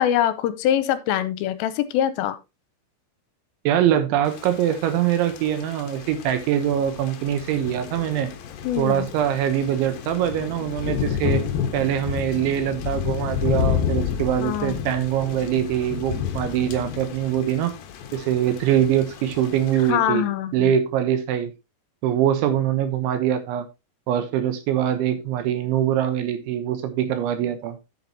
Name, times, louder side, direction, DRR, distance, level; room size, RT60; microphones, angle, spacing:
voice 1, 0.0-2.4 8.6-9.1 14.4-14.8 19.9-20.7, left 11 dB, 85° left, 13 dB, 3.3 m, -23 dB
voice 2, 3.6-8.3 8.8-11.5 11.7-17.7 18.1-20.2 20.5-21.5 22.0-23.7 24.1-27.8, right 10 dB, 75° right, 9 dB, 3.2 m, -23 dB
Thunder / Rain, 4.2-19.9, left 8 dB, 65° left, 2.4 m, -30 dB
10.5 x 8.7 x 2.9 m, 0.25 s
omnidirectional pair, 5.9 m